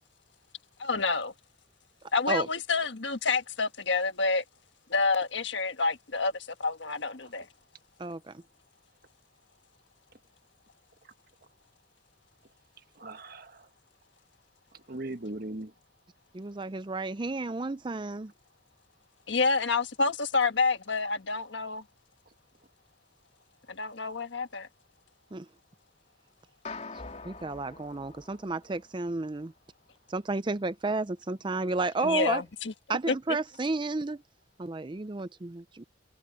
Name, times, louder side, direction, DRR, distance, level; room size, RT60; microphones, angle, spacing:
voice 1, 0.8-1.3 2.1-4.4 4.9-7.5 19.3-21.8 23.7-24.7 32.0-32.7 33.1-33.2, left 4 dB, 75° left, 1.5 m, -28 dB
voice 2, 8.0-8.4 16.3-18.3 25.3-25.5 27.2-29.5 30.1-32.4 32.9-34.2 34.6-35.8, right 3 dB, 25° right, 0.5 m, -32 dB
voice 3, 12.9-13.7 14.7-15.7 22.3-22.4, right 2 dB, 50° right, 1.4 m, -40 dB
sound 1, 26.6-29.1, left 3 dB, 35° left, 3.4 m, -44 dB
head